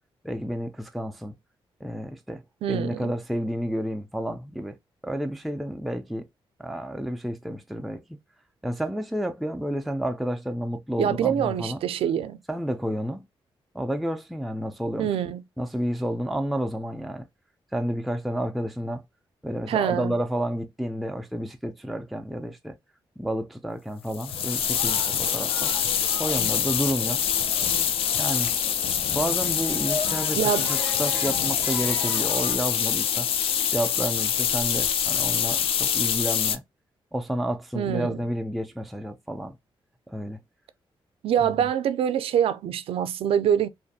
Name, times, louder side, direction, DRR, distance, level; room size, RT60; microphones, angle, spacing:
voice 1, 0.2-1.3 1.8-2.4 2.7-4.8 5.0-6.3 6.6-8.0 8.6-11.8 12.5-13.3 13.7-15.1 15.6-17.3 17.7-19.0 19.4-22.8 23.2-25.7 26.2-27.2 28.2-28.5 29.1-33.3 33.7-36.6 37.1-39.6 40.1-40.4 41.4-41.5, equal, ahead, 0.3 m, -30 dB
voice 2, 2.6-3.1 11.0-12.4 15.0-15.4 19.7-20.1 30.4-30.7 37.7-38.2 41.2-43.7, right 9 dB, 80° right, 0.4 m, -25 dB
sound 1, 24.1-36.6, left 8 dB, 85° left, 0.4 m, -25 dB
sound 2, 24.3-32.6, left 2 dB, 30° left, 1.8 m, -38 dB
2.6 x 2.5 x 2.3 m
wide cardioid pair, 125°, 9 cm